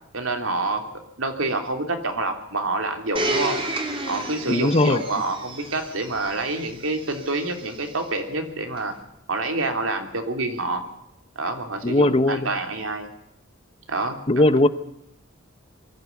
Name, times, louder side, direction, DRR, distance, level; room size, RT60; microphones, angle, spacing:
voice 1, 0.1-0.8 1.2-3.6 4.1-8.9 9.3-10.8 11.3-13.1 13.9-14.4, right 2 dB, 75° right, 5 dB, 3.2 m, -27 dB
Domestic sounds home sounds, 3.2-8.0 8.8-8.9, right 2 dB, 25° right, 2.9 m, -31 dB
voice 2, 4.5-5.0 11.8-12.5 14.3-14.7, left 2 dB, 30° left, 14 dB, 0.8 m, -18 dB
22.5 x 14.5 x 8.2 m, 0.84 s
head